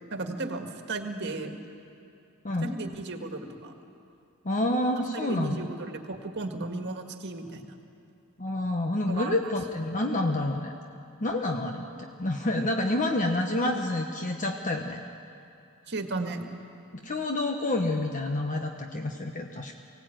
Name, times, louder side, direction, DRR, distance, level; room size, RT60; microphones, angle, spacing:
voice 1, 0.1-1.6 2.6-3.7 5.1-7.8 9.1-9.5 15.9-16.5, right 3 dB, 50° right, 4 dB, 1.8 m, -35 dB
voice 2, 2.4-2.8 4.4-5.7 8.4-10.7 11.2-15.0 17.0-19.8, left 1 dB, 35° left, 3 dB, 1.1 m, -28 dB
24.0 x 17.0 x 9.1 m, 2.6 s
head